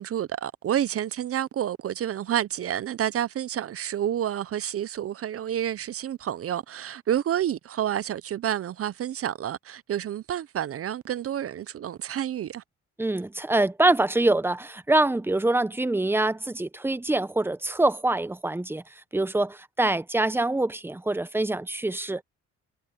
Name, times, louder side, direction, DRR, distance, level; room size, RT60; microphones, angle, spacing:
voice 1, 0.0-12.6, right 10 dB, 50° right, 0.6 m, -29 dB
voice 2, 13.0-22.2, right 2 dB, 5° right, 0.9 m, -25 dB
cardioid pair, 90°, 30 cm